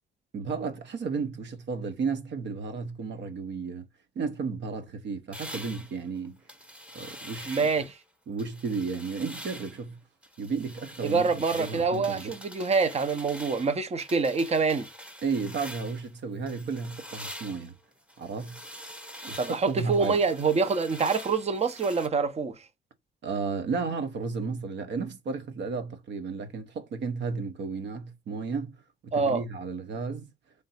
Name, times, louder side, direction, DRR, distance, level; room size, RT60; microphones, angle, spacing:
voice 1, 0.3-3.9 4.2-6.4 6.9-7.7 8.3-10.0 10.4-12.3 15.2-17.7 18.2-18.6 19.2-20.2 23.2-28.8 29.0-30.3, right 5 dB, 65° right, 0.9 m, -33 dB
sound 1, 5.3-8.0 8.4-9.8 10.2-16.1 16.5-22.1, equal, 5° right, 0.9 m, -44 dB
voice 2, 7.5-7.9 11.0-14.9 19.4-22.5 29.1-29.4, right 4 dB, 30° right, 0.7 m, -26 dB
3.4 x 2.7 x 4.1 m
cardioid pair, 90°, 20 cm